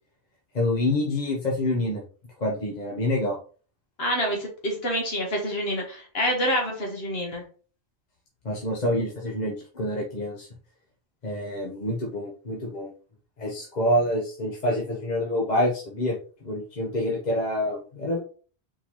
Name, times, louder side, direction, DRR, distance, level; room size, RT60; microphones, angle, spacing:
voice 1, 0.5-2.0 2.4-3.4 8.4-10.5 11.2-12.9 13.4-16.1 16.4-18.2, left 1 dB, 45° left, -2 dB, 1.0 m, -27 dB
voice 2, 4.0-7.4, equal, 70° left, 0 dB, 1.5 m, -27 dB
4.4 x 3.8 x 3.0 m, 0.40 s
omnidirectional pair, 1.1 m